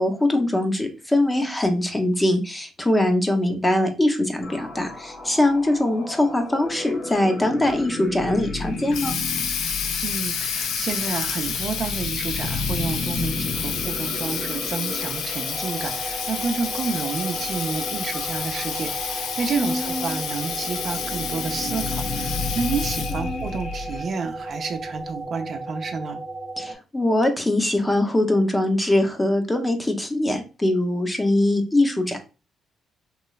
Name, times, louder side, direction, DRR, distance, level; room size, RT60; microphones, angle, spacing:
voice 1, 0.0-9.2 19.6-20.2 23.2-23.5 26.6-32.2, left 1 dB, 15° left, 5 dB, 0.6 m, -22 dB
sound 1, 4.4-24.0, left 3 dB, 65° left, 1.8 m, -34 dB
Water tap faucet, 8.6-23.3, left 7 dB, 85° left, 0.4 m, -30 dB
voice 2, 10.0-26.2, right 5 dB, 50° right, 5 dB, 0.5 m, -30 dB
sound 2, 15.5-26.7, right 2 dB, 25° right, 0.8 m, -35 dB
3.1 x 3.0 x 2.3 m, 0.31 s
cardioid pair, 90°, 0 cm